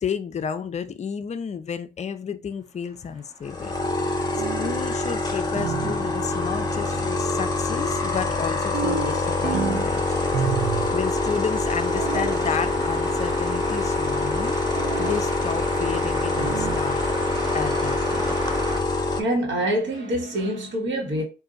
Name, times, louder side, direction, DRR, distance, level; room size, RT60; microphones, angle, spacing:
voice 1, 0.0-3.7 4.5-10.3 10.9-14.6 15.0-17.0 17.5-18.4, left 7 dB, 35° left, 0.5 m, -31 dB
sound 1, 3.0-18.8, right 1 dB, 20° right, 0.8 m, -36 dB
sound 2, 3.4-19.2, left 2 dB, 20° left, 0.9 m, -25 dB
sound 3, 4.3-4.9 5.5-6.1 8.7-9.9 10.3-11.0 11.9-12.4 14.7-15.3 16.3-16.9, right 8 dB, 50° right, 0.5 m, -29 dB
voice 2, 19.2-21.2, right 1 dB, 70° right, 1.4 m, -25 dB
3.8 x 2.6 x 3.8 m
cardioid pair, 90°, 20 cm